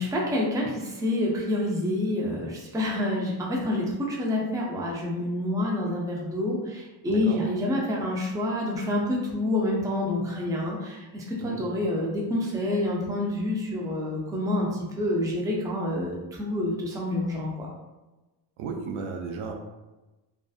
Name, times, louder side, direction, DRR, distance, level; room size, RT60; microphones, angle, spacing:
voice 1, 0.0-14.7 15.0-17.7, left 1 dB, 10° right, -3 dB, 0.4 m, -28 dB
voice 2, 18.6-19.5, right 5 dB, 80° right, 2 dB, 0.6 m, -34 dB
2.5 x 2.4 x 2.3 m, 1.1 s
cardioid pair, 110°, 49 cm